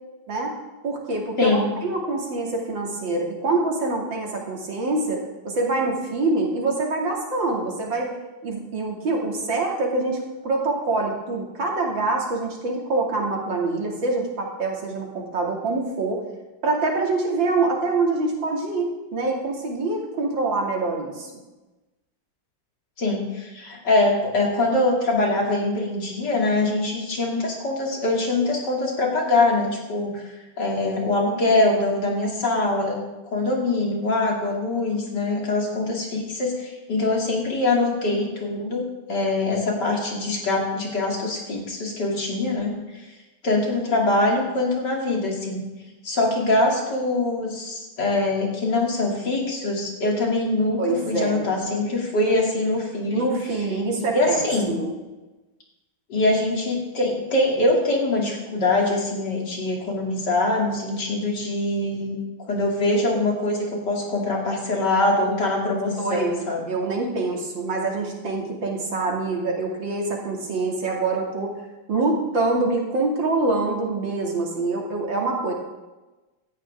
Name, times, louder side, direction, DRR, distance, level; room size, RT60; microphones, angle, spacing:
voice 1, 0.8-8.1 8.4-16.2 16.6-21.3 50.8-51.4 53.1-54.9 66.0-71.5 71.9-75.5, right 3 dB, 75° right, -1 dB, 3.3 m, -25 dB
voice 2, 23.0-30.2 30.6-33.0 33.3-38.8 39.1-42.8 43.4-45.7 46.0-53.4 53.9-54.8 56.1-62.2 62.5-66.6, left 2 dB, 60° left, -1 dB, 3.5 m, -23 dB
16.5 x 13.5 x 3.7 m, 1.1 s
omnidirectional pair, 2.1 m